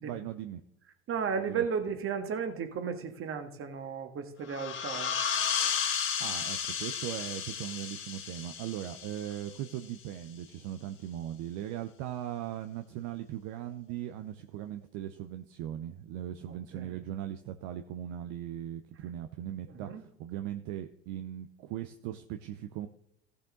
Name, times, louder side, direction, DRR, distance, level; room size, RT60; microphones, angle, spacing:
voice 1, 0.0-0.6 1.3-1.6 6.2-22.9, right 11 dB, 60° right, 7 dB, 0.8 m, -39 dB
voice 2, 1.1-5.2 16.7-16.9 19.8-20.0, right 6 dB, 40° right, 7 dB, 1.8 m, -34 dB
sound 1, 4.5-9.8, left 7 dB, 40° left, 2.6 m, -33 dB
15.0 x 6.8 x 3.9 m, 0.75 s
hypercardioid pair, 85°, 33 cm